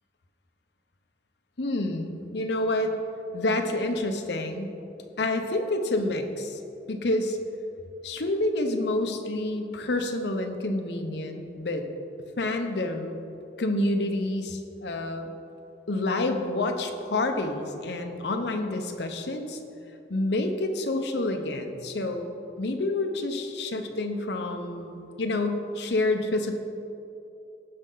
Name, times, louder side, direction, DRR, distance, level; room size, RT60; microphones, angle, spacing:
voice 1, 1.6-3.0 3.3-4.7 5.2-6.6 6.9-7.4 8.0-11.8 12.4-13.2 13.6-15.3 15.9-19.6 20.1-22.3 22.6-26.5, left 2 dB, 70° left, 5 dB, 0.8 m, -28 dB
15.5 x 5.5 x 3.9 m, 2.8 s
head